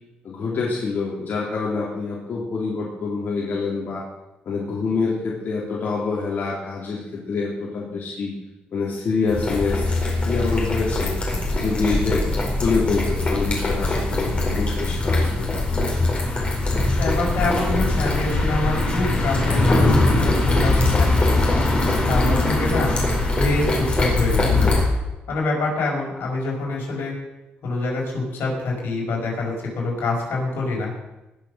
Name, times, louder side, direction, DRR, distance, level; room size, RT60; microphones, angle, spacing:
voice 1, 0.2-4.0 4.4-8.3 8.7-9.8 10.2-11.1 11.5-15.5, left 4 dB, 60° left, -4 dB, 3.3 m, -26 dB
sound 1, 9.3-24.9, left 2 dB, 30° left, 4.8 m, -21 dB
voice 2, 17.0-21.3 22.1-22.9 23.3-24.7 25.3-27.1 27.6-30.9, left 2 dB, 80° left, -1 dB, 5.0 m, -25 dB
19.5 x 6.9 x 6.3 m, 1.0 s
cardioid pair, 95°, 4 cm